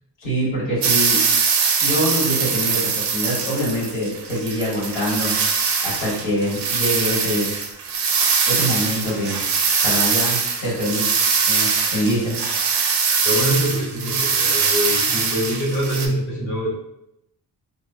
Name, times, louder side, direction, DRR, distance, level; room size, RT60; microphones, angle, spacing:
voice 1, 0.2-1.2 1.8-5.4 5.8-7.5 8.4-9.4 9.8-11.1 11.5-12.4, equal, 85° left, -6 dB, 1.4 m, -24 dB
sound 1, 0.8-16.1, right 5 dB, 70° right, 0.6 m, -22 dB
voice 2, 13.2-16.7, equal, 40° left, -4 dB, 1.0 m, -24 dB
2.8 x 2.1 x 2.5 m, 0.84 s
cardioid pair, 65°, 43 cm